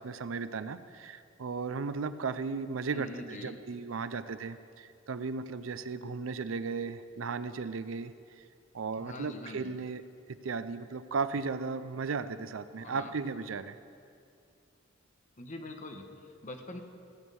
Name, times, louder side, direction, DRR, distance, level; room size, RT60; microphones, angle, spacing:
voice 1, 0.0-8.1 8.7-10.0 10.3-13.8, right 4 dB, 80° right, 13 dB, 0.5 m, -36 dB
voice 2, 2.9-3.6 9.0-9.8 12.8-13.1 15.4-16.8, left 1 dB, 40° left, 4 dB, 1.1 m, -44 dB
15.5 x 6.3 x 8.7 m, 2.4 s
head